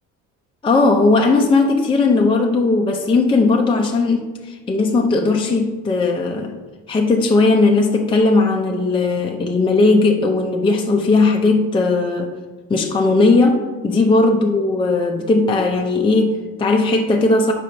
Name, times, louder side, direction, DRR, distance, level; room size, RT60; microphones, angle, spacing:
voice 1, 0.6-6.6 6.9-12.4 12.7-17.5, left 3 dB, 15° left, 2 dB, 0.5 m, -17 dB
5.0 x 4.2 x 5.7 m, 1.3 s
cardioid pair, 100°, 32 cm